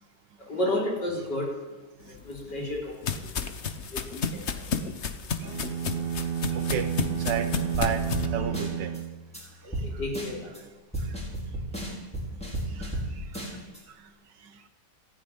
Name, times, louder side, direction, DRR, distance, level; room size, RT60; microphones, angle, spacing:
voice 1, 0.5-1.5 2.2-2.9 4.2-4.3 9.6-10.3, left 1 dB, 75° left, -1 dB, 4.6 m, -30 dB
sound 1, 2.1-8.3, left 6 dB, 45° left, 1.1 m, -32 dB
sound 2, 5.4-9.8, right 8 dB, 45° right, 0.8 m, -31 dB
voice 2, 5.4-6.0 6.5-6.9 7.2-9.0 9.7-10.0 10.6-10.7 11.0-11.2 11.9-12.0 12.7-14.1 14.4-14.7, right 7 dB, 85° right, 8 dB, 1.6 m, -36 dB
sound 3, 7.7-7.9 8.1-8.3 8.5-9.0 9.3-9.4 9.7-9.9 10.1-10.6 10.9-13.1 13.3-13.8, equal, 5° left, 5.1 m, -33 dB
15.0 x 9.8 x 9.8 m, 1.2 s
omnidirectional pair, 1.9 m